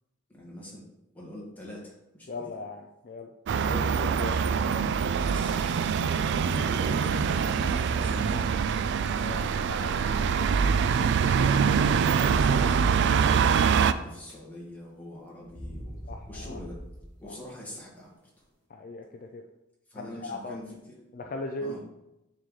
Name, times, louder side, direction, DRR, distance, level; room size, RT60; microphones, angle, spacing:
voice 1, 0.3-0.9 1.1-2.5 3.6-4.2 5.3-5.9 6.2-7.7 8.0-8.5 11.7-16.0 16.3-16.8 17.2-18.3 19.9-21.1 21.6-21.8, left 1 dB, 10° left, -5 dB, 1.9 m, -44 dB
voice 2, 2.3-3.3 3.7-4.3 9.2-10.0 10.2-10.8 16.1-16.6 17.2-17.4 18.7-19.4 19.9-20.6 21.1-21.8, left 2 dB, 45° left, 3 dB, 0.4 m, -39 dB
sound 1, 3.5-13.9, right 6 dB, 55° right, 0.3 m, -24 dB
sound 2, 12.1-12.5 12.7-13.9 14.2-14.7 15.4-17.4, equal, 25° left, 2.5 m, -43 dB
9.6 x 3.9 x 3.2 m, 0.90 s
head